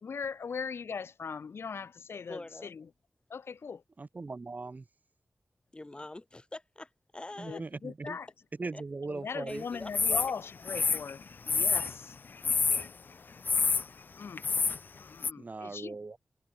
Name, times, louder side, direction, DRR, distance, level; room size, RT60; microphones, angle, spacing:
voice 1, 0.0-2.9 3.3-3.8 7.4-8.3 9.0-12.2 14.2-14.4 15.0-16.0, left 6 dB, 80° left, 0.8 m, -39 dB
voice 2, 2.3-2.7 5.7-7.6 8.7-8.8 9.5-10.3, left 2 dB, 25° left, 3.1 m, -44 dB
voice 3, 4.0-4.8 7.4-8.2 8.6-9.6 15.4-16.2, right 3 dB, 45° right, 1.0 m, -39 dB
sound 1, 9.9-10.3 10.7-11.9 12.4-12.9 13.4-13.8 14.4-14.8 15.2-15.3, left 4 dB, 50° left, 0.3 m, -27 dB
wide cardioid pair, 90°, 4 cm